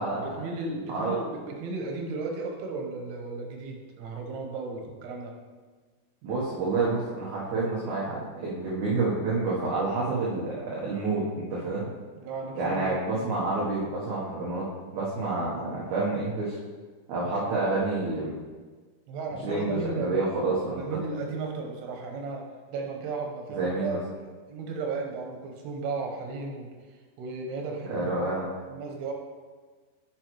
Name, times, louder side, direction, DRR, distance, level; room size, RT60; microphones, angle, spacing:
voice 1, 0.2-5.3 12.2-13.0 17.4-17.5 19.1-20.3 20.7-26.7 27.2-28.2 28.7-29.1, right 3 dB, 90° right, 1 dB, 3.0 m, -35 dB
voice 2, 6.2-11.9 12.6-14.7 14.9-16.6 17.1-18.4 19.4-20.8 23.5-24.0 27.8-28.5, right 3 dB, 65° right, -6 dB, 2.1 m, -28 dB
8.9 x 5.6 x 3.0 m, 1.4 s
omnidirectional pair, 4.4 m